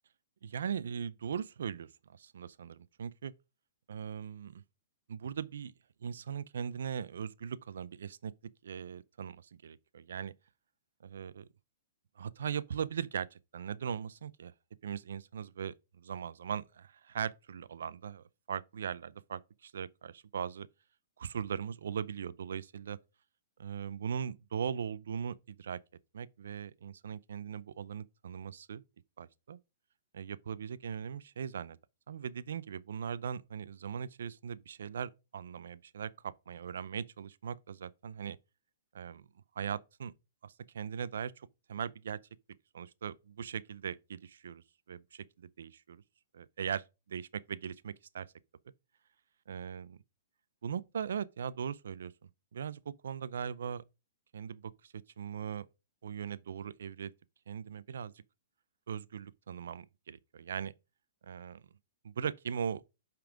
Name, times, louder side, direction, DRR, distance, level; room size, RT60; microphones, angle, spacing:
voice 1, 0.4-1.9 2.2-3.3 3.9-4.6 5.1-5.7 6.0-8.3 8.6-10.3 11.0-11.5 12.2-14.5 14.8-20.7 21.2-23.0 23.6-25.8 26.1-28.8 29.2-29.6 30.1-31.8 32.1-38.4 38.9-39.2 39.6-40.1 40.4-42.2 42.7-46.0 46.3-48.3 49.5-50.0 50.6-52.1 52.5-53.8 54.3-55.7 56.0-57.1 57.5-58.1 58.9-60.7 61.2-61.6 62.0-62.8, right 7 dB, 80° right, 0.5 m, -39 dB
5.7 x 5.2 x 4.9 m
hypercardioid pair, 145°, 0 cm